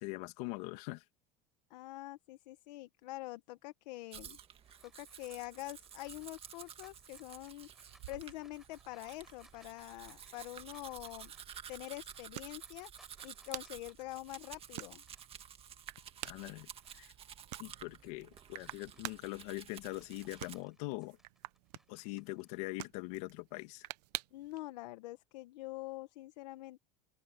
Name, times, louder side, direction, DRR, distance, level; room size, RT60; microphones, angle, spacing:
voice 1, 0.0-1.0 16.2-17.1 17.6-21.2 21.9-23.9, left 22 dB, 70° left, 2.2 m, -42 dB
voice 2, 1.7-4.4 4.8-11.3 11.7-12.9 13.2-15.0 24.3-26.8, left 19 dB, 90° left, 1.1 m, -46 dB
Domestic sounds home sounds, 4.1-20.6, right 8 dB, 30° right, 1.8 m, -52 dB
sound 1, 4.2-17.2 17.6-22.5, equal, ahead, 7.2 m, -68 dB
sound 2, 7.9-24.6, right 20 dB, 85° right, 0.8 m, -51 dB
open air
supercardioid pair, 145°, 21 cm